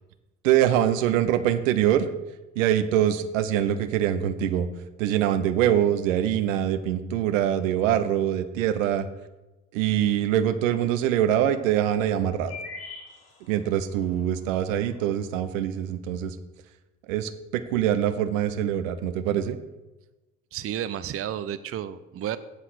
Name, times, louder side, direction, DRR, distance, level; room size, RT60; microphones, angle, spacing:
voice 1, 0.4-2.1 2.6-4.7 5.0-9.1 9.7-12.6 13.5-16.4 17.1-19.6, right 10 dB, 70° right, 10 dB, 1.0 m, -24 dB
sound 1, 10.3-10.4 10.7-10.8 12.2-13.8 14.3-14.4 14.7-15.1, left 4 dB, 60° left, 3.1 m, -41 dB
voice 2, 20.5-22.4, right 10 dB, 35° right, 13 dB, 0.7 m, -31 dB
16.5 x 5.8 x 6.2 m, 1.1 s
hypercardioid pair, 60°, 40 cm